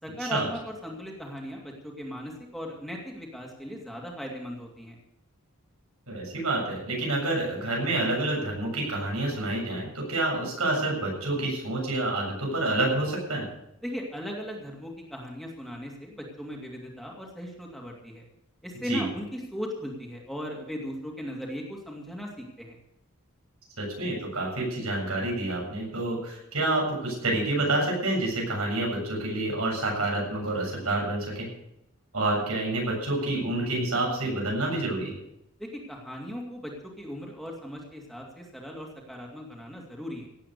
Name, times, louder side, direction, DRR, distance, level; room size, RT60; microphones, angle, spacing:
voice 1, 0.0-4.9 13.8-18.3 18.6-22.8 35.6-40.3, equal, ahead, -1 dB, 2.3 m, -38 dB
voice 2, 6.1-13.4 18.8-19.0 23.8-31.5 32.1-35.1, right 2 dB, 85° right, -1 dB, 7.5 m, -28 dB
17.5 x 8.5 x 6.8 m, 0.81 s
head